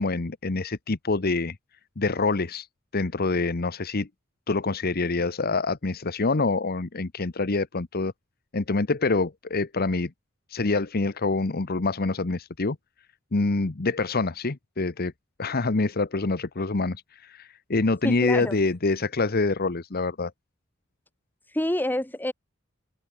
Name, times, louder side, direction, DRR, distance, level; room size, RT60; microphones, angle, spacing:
voice 1, 0.0-1.6 2.0-2.7 2.9-4.1 4.5-8.1 8.5-10.1 10.5-12.8 13.3-15.1 15.4-20.3, left 3 dB, 50° left, 1.0 m, -26 dB
voice 2, 18.0-18.6 21.5-22.3, left 1 dB, 10° left, 1.7 m, -27 dB
head